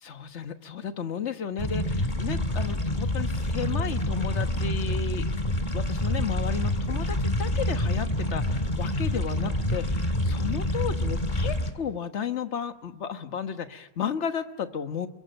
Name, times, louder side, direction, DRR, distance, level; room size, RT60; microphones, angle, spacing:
voice 1, 0.0-5.2 5.7-15.1, left 7 dB, 40° left, 8 dB, 1.3 m, -33 dB
sound 1, 1.6-11.7, left 1 dB, 20° left, 1.8 m, -27 dB
27.5 x 22.5 x 9.1 m, 0.91 s
omnidirectional pair, 2.3 m